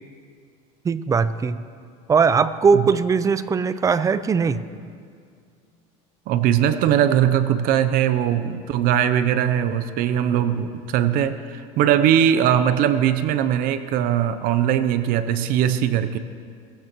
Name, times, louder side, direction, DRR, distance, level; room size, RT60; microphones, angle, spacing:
voice 1, 0.8-1.6 2.1-4.6, right 5 dB, 20° right, 14 dB, 0.5 m, -20 dB
voice 2, 6.3-16.2, right 10 dB, 55° right, 11 dB, 0.7 m, -20 dB
21.0 x 15.5 x 3.1 m, 2.2 s
supercardioid pair, 130°, 18 cm